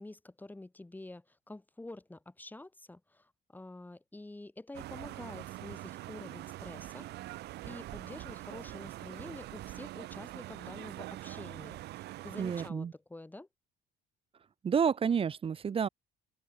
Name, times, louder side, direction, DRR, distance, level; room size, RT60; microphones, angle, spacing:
voice 1, 0.0-13.5, left 2 dB, 10° left, 3.9 m, -48 dB
sound 1, 4.7-12.7, right 16 dB, 80° right, 5.6 m, -44 dB
voice 2, 12.4-12.9 14.6-15.9, right 7 dB, 35° right, 0.9 m, -29 dB
open air
cardioid pair, 110°, 17 cm